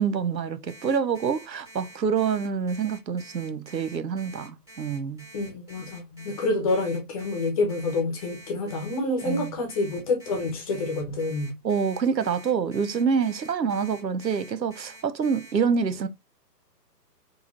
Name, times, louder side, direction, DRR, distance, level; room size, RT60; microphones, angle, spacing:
voice 1, 0.0-5.3 9.2-9.5 11.6-16.1, right 6 dB, 90° right, 0.6 m, -26 dB
Alarm, 0.7-15.5, right 1 dB, 5° right, 1.3 m, -48 dB
voice 2, 5.3-11.6, left 2 dB, 20° left, 0.9 m, -28 dB
4.6 x 3.1 x 2.5 m
figure-of-eight pair, 130°, 49 cm